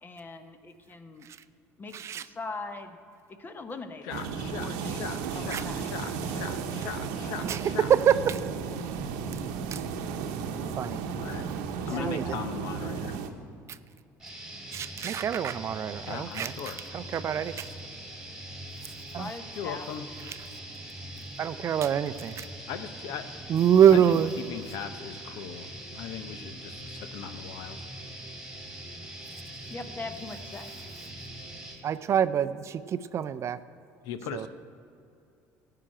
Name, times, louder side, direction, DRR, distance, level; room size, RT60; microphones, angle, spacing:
voice 1, 0.0-1.3 1.8-3.0 3.4-4.2 4.6-5.0 5.3-5.8 11.9-12.4 12.7-13.0 19.2-19.9 20.2-20.3 29.7-30.7, left 3 dB, 30° left, 8 dB, 1.1 m, -41 dB
voice 2, 1.9-2.2 5.5-5.6 7.4-7.6 7.9-8.4 9.7-9.8 10.8-11.0 12.0-12.2 14.7-16.5 16.9-17.7 19.1-19.3 21.4-22.5 23.5-24.3 31.8-33.6 34.3-34.5, right 9 dB, 45° right, 13 dB, 0.5 m, -25 dB
voice 3, 4.0-7.9 11.2-11.4 11.9-13.2 16.1-16.8 19.6-20.0 22.7-23.3 23.9-27.9 34.0-34.5, left 8 dB, 75° left, 10 dB, 0.7 m, -39 dB
sound 1, 4.1-13.3, right 6 dB, 85° right, 0.9 m, -34 dB
sound 2, 14.2-31.8, right 1 dB, 5° right, 2.8 m, -42 dB
13.5 x 5.8 x 8.8 m, 2.5 s
supercardioid pair, 90°, 7 cm